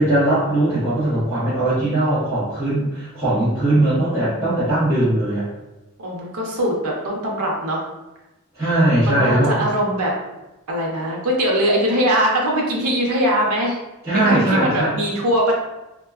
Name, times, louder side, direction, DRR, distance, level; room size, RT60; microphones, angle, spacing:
voice 1, 0.0-5.4 8.5-9.5 14.0-14.9, right 1 dB, 10° right, -15 dB, 0.9 m, -19 dB
voice 2, 3.7-4.6 6.0-7.9 9.0-10.2 10.7-13.8 14.1-15.5, equal, 85° right, -1 dB, 0.7 m, -22 dB
2.8 x 2.2 x 2.3 m, 1.0 s
head